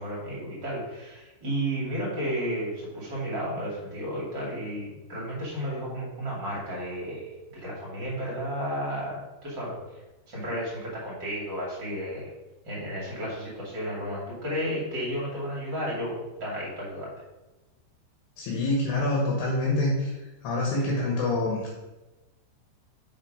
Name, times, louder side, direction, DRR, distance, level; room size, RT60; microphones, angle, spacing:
voice 1, 0.0-9.8 10.3-12.3 12.6-17.1 20.7-21.0, equal, 35° right, -6 dB, 2.0 m, -33 dB
voice 2, 18.4-20.1 20.4-21.7, left 2 dB, 65° left, -2 dB, 3.0 m, -26 dB
6.8 x 5.6 x 5.0 m, 1.1 s
omnidirectional pair, 5.4 m